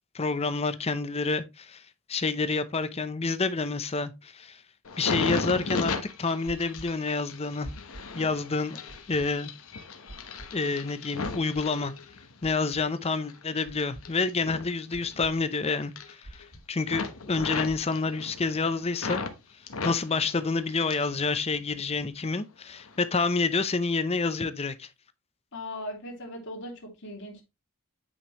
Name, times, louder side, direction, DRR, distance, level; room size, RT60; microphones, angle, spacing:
voice 1, 0.1-1.8 2.1-4.6 5.0-7.7 8.1-8.8 9.1-9.5 10.5-11.9 12.4-19.2 19.8-24.9, left 4 dB, 30° left, 0.7 m, -28 dB
sound 1, 4.8-12.5 13.0-15.6 15.8-16.5 16.8-19.3 19.7-21.2 21.5-22.2 22.8-23.0, left 4 dB, 75° left, 1.1 m, -36 dB
sound 2, 6.5-6.9 7.6-8.0 8.9-9.3 10.1-10.5 11.2-11.6 12.4-12.8 13.6-14.0 14.9-15.3 16.2-16.6 17.4-17.8, right 1 dB, 45° right, 2.0 m, -44 dB
voice 2, 25.5-27.4, left 1 dB, 55° left, 2.4 m, -38 dB
8.7 x 5.3 x 3.0 m
head